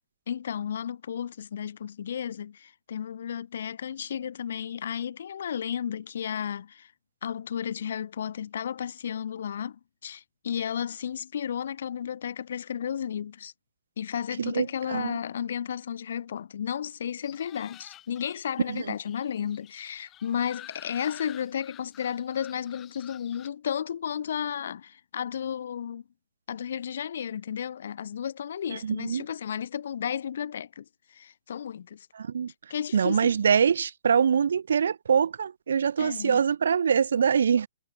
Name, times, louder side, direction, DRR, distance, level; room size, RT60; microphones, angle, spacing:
voice 1, 0.3-6.9 7.2-13.5 14.0-26.0 26.5-30.8 31.1-32.1 32.7-33.3 36.0-36.4, left 8 dB, 65° left, 2.7 m, -33 dB
voice 2, 14.4-15.1 18.7-18.8 28.7-29.2 32.1-32.5 32.9-37.7, right 7 dB, 75° right, 0.6 m, -24 dB
sound 1, 17.2-23.5, left 13 dB, 25° left, 4.4 m, -50 dB
hypercardioid pair, 135°, 0 cm